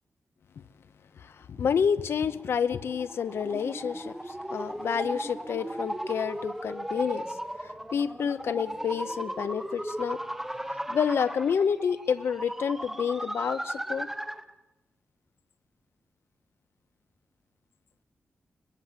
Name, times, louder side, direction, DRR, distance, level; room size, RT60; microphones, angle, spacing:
voice 1, 1.2-10.2 10.9-14.1, left 7 dB, 75° left, 0.9 m, -29 dB
sound 1, 1.9-14.5, right 1 dB, 5° right, 1.0 m, -37 dB
22.0 x 21.5 x 7.5 m
wide cardioid pair, 130°, 4 cm